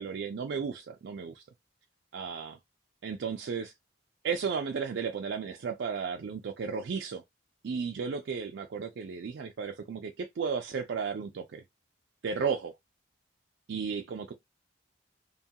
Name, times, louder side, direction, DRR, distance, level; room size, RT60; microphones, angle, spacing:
voice 1, 0.0-1.4 2.1-2.6 3.0-3.7 4.2-7.2 7.6-11.6 12.2-12.7 13.7-14.3, right 6 dB, 60° right, 0.3 m, -34 dB
2.8 x 2.3 x 2.7 m
head